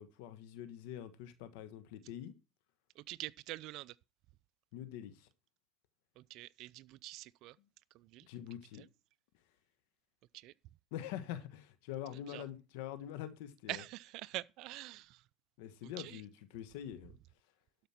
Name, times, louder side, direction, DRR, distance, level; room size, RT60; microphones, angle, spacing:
voice 1, 0.0-2.3 4.7-5.3 8.3-8.8 10.9-13.8 15.6-17.2, left 11 dB, 80° left, 1.4 m, -45 dB
voice 2, 3.0-3.9 6.2-7.6 7.9-8.3 10.3-10.5 12.3-12.4 13.7-15.2 16.0-16.2, right 18 dB, 65° right, 0.4 m, -45 dB
12.0 x 5.1 x 5.8 m
supercardioid pair, 95°, 0 cm